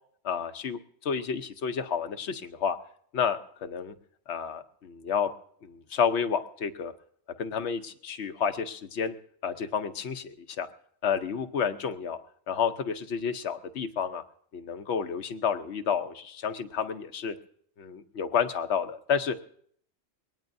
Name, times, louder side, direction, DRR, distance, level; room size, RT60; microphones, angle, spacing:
voice 1, 0.2-2.8 3.1-3.9 4.3-5.3 5.6-6.9 7.4-9.1 9.4-10.7 11.0-12.2 12.5-14.2 14.5-17.3 17.8-19.5, left 7 dB, 70° left, 8 dB, 1.1 m, -30 dB
21.5 x 18.0 x 2.6 m, 0.64 s
omnidirectional pair, 1.2 m